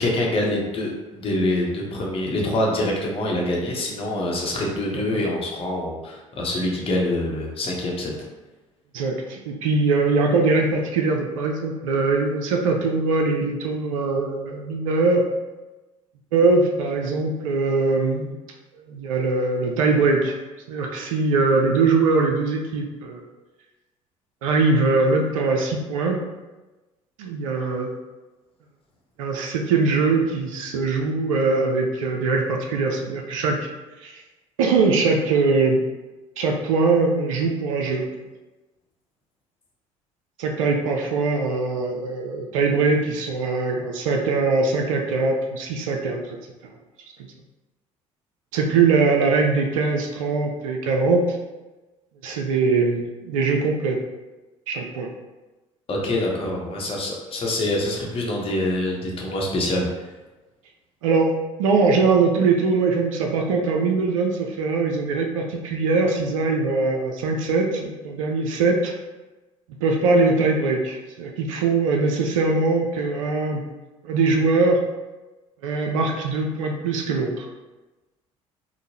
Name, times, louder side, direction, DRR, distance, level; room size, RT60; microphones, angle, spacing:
voice 1, 0.0-8.1 55.9-60.1, left 1 dB, 35° left, -1 dB, 0.8 m, -25 dB
voice 2, 8.9-15.2 16.3-18.3 18.9-20.4 20.7-23.2 24.4-26.2 27.2-27.9 29.2-33.6 34.0-34.2 34.6-35.8 36.4-38.1 40.4-46.4 48.5-51.4 52.2-54.0 54.7-55.1 61.0-61.3 61.6-68.9 69.8-73.6 74.0-74.8 75.6-77.5, right 3 dB, 70° right, 2 dB, 0.4 m, -22 dB
3.6 x 2.0 x 2.8 m, 1.1 s
figure-of-eight pair, 55°, 17 cm